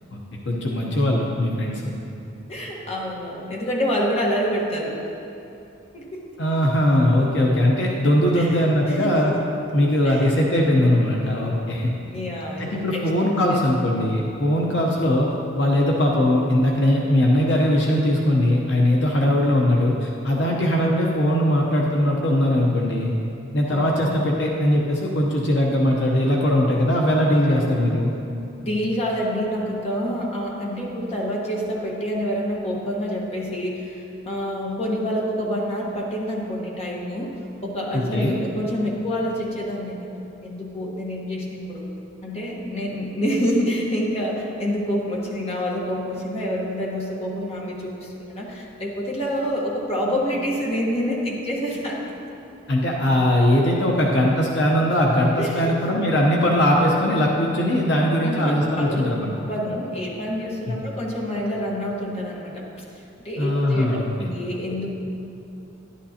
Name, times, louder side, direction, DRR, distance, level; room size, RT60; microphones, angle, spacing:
voice 1, 0.4-2.0 6.4-9.3 9.7-11.9 12.6-23.1 23.5-28.1 37.9-38.3 52.7-59.3 60.7-60.8 63.4-64.3, left 1 dB, 65° left, -2 dB, 0.9 m, -20 dB
voice 2, 2.5-5.0 5.9-6.2 8.3-9.4 10.0-10.2 12.0-13.6 14.8-14.9 23.7-24.1 27.5-27.8 28.6-37.3 37.6-40.1 40.4-41.9 42.2-52.0 55.4-55.7 58.2-59.1 59.4-62.7 63.2-64.9, equal, 30° left, -3 dB, 1.3 m, -27 dB
11.5 x 11.0 x 2.9 m, 2.7 s
head